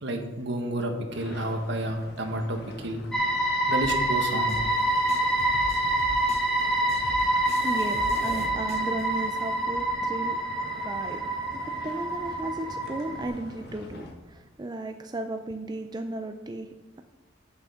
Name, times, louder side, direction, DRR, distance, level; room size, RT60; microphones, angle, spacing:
voice 1, 0.0-3.0 3.7-4.6, right 1 dB, 60° right, 5 dB, 1.4 m, -30 dB
sound 1, 1.1-14.1, left 1 dB, 55° left, 1.6 m, -45 dB
sound 2, 3.1-13.3, right 1 dB, 5° left, 1.7 m, -27 dB
sound 3, 3.8-9.8, left 1 dB, 35° left, 0.9 m, -41 dB
voice 2, 7.5-10.4 10.8-17.0, right 2 dB, 20° right, 6 dB, 0.4 m, -35 dB
8.9 x 7.1 x 5.6 m, 1.2 s
head